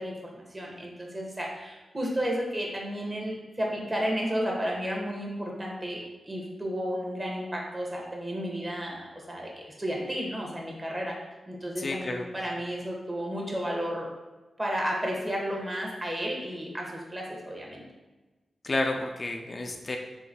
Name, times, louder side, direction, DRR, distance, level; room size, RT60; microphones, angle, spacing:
voice 1, 0.0-11.2 11.5-14.1 14.6-17.8, equal, 25° right, -1 dB, 1.0 m, -32 dB
voice 2, 11.8-12.2 18.6-20.0, left 2 dB, 45° left, 3 dB, 0.3 m, -30 dB
3.8 x 2.7 x 2.7 m, 1.2 s
cardioid pair, 60°, 0 cm